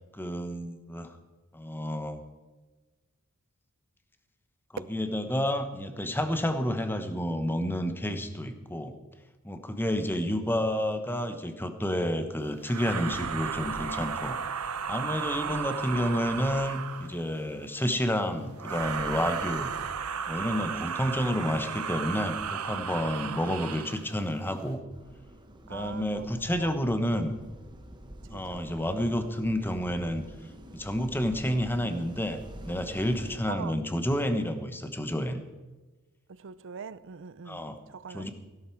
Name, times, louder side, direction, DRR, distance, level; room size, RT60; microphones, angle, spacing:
voice 1, 0.1-1.1 1.5-2.2 4.7-8.9 9.4-14.4 14.9-19.7 20.3-24.8 25.7-27.3 28.3-30.2 30.7-35.4 37.5-37.8 38.1-38.3, equal, 10° left, 8 dB, 1.1 m, -30 dB
sound 1, 12.7-17.2 18.6-24.1, right 6 dB, 90° right, 0.8 m, -34 dB
sound 2, 24.9-33.4, right 1 dB, 20° right, 1.2 m, -47 dB
voice 2, 25.7-26.8 28.3-29.1 33.5-33.7 36.3-38.3, right 6 dB, 60° right, 17 dB, 0.5 m, -43 dB
16.5 x 11.5 x 4.6 m, 1.2 s
head